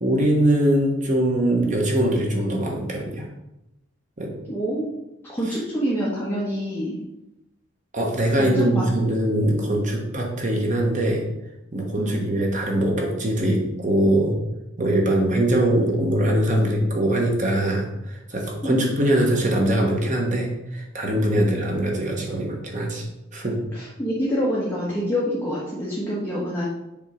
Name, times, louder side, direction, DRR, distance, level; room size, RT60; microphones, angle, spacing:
voice 1, 0.0-3.3 4.2-4.3 7.9-11.3 11.7-14.4 14.8-23.0 23.3-23.6, right 1 dB, 40° right, 0 dB, 1.2 m, -22 dB
voice 2, 4.5-4.9 5.3-7.0 8.4-8.9 12.0-12.3 18.6-18.8 21.1-21.6 23.7-26.6, equal, 10° left, -7 dB, 1.3 m, -26 dB
7.0 x 3.6 x 5.0 m, 0.90 s
head